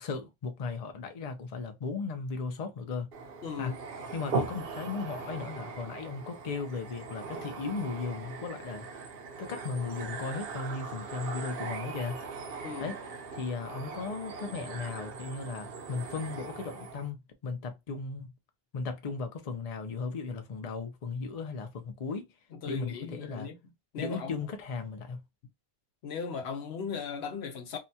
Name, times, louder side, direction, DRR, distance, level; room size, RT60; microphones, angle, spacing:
voice 1, 0.0-3.1 3.6-3.7 4.1-8.9 9.4-12.2 12.8-13.0 13.3-18.3 18.7-22.3 22.7-23.5 24.0-25.2, left 4 dB, 45° left, 0.5 m, -36 dB
sound 1, 3.1-17.1, right 4 dB, 65° right, 0.8 m, -40 dB
voice 2, 3.4-3.8 12.6-12.9 22.6-23.6 23.9-24.4 26.0-27.8, left 6 dB, 75° left, 0.9 m, -37 dB
2.7 x 2.2 x 2.7 m
omnidirectional pair, 1.1 m